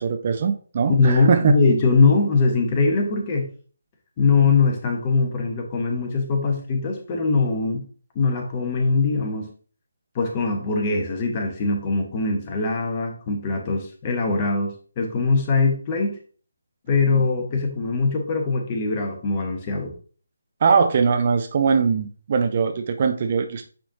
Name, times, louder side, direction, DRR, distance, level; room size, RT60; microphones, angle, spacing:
voice 1, 0.0-1.6 20.6-23.6, right 5 dB, 35° right, 7 dB, 0.6 m, -21 dB
voice 2, 0.9-3.5 4.2-7.8 8.1-9.5 10.1-16.1 16.9-19.9, left 4 dB, 25° left, 2 dB, 1.1 m, -22 dB
8.7 x 4.3 x 2.7 m, 0.42 s
figure-of-eight pair, 150°, 0 cm